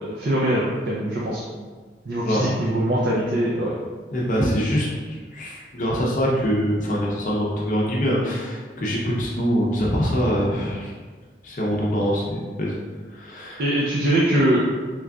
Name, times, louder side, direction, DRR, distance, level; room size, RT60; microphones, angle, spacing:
voice 1, 0.0-1.4 2.1-3.7 13.6-14.6, right 1 dB, 65° right, -5 dB, 0.5 m, -22 dB
voice 2, 4.1-10.9 11.4-12.8 13.1-13.6, equal, 45° left, -4 dB, 0.6 m, -24 dB
3.6 x 3.2 x 2.3 m, 1.4 s
head